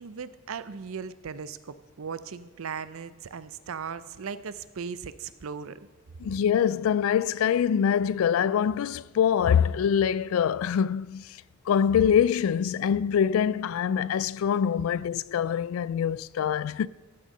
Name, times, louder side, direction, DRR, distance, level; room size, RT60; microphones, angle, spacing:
voice 1, 0.0-5.8, right 6 dB, 85° right, 0.5 m, -38 dB
voice 2, 6.2-11.4 11.7-16.9, left 8 dB, 80° left, 0.3 m, -24 dB
14.5 x 6.4 x 5.3 m
head